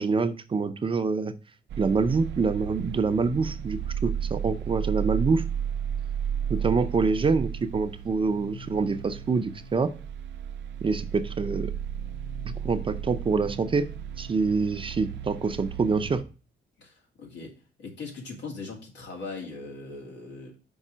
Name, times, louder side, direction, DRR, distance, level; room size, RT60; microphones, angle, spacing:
voice 1, 0.0-1.3 1.8-5.4 6.5-9.9 10.8-11.7 12.6-13.9 14.2-16.2, right 4 dB, 30° right, 0.6 m, -26 dB
sound 1, 1.7-16.2, right 8 dB, 85° right, 0.6 m, -33 dB
voice 2, 16.8-20.6, left 3 dB, 80° left, 2.4 m, -40 dB
5.5 x 4.8 x 6.1 m
cardioid pair, 125°, 18 cm